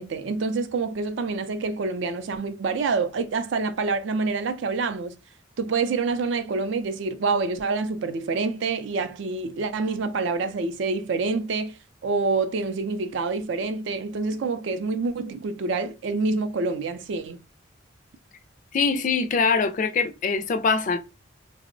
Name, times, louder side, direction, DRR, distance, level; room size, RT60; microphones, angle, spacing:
voice 1, 0.0-5.1 5.6-17.4, right 4 dB, 65° right, 0.4 m, -27 dB
voice 2, 18.7-21.0, left 4 dB, 40° left, 0.3 m, -23 dB
3.5 x 2.0 x 2.5 m
head